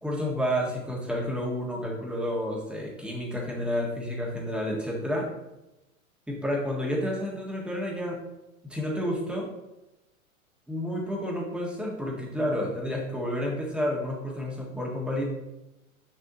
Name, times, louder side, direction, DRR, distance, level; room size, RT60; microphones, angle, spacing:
voice 1, 0.0-5.3 6.3-8.2 8.6-9.5 10.7-15.2, equal, ahead, -2 dB, 1.7 m, -30 dB
9.6 x 5.3 x 2.9 m, 0.95 s
figure-of-eight pair, 100°, 42 cm